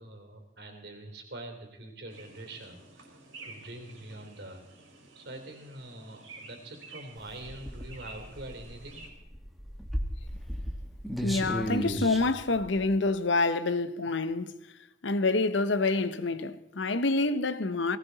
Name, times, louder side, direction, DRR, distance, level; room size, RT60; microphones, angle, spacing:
voice 1, 0.0-4.6 5.2-9.0, right 1 dB, 60° right, 3.4 m, -44 dB
sound 1, 2.1-9.1, right 3 dB, 90° right, 4.4 m, -51 dB
sound 2, 7.2-13.0, equal, ahead, 1.6 m, -35 dB
voice 2, 11.2-14.5 15.0-18.0, left 3 dB, 75° left, 0.9 m, -27 dB
18.5 x 17.5 x 4.1 m
head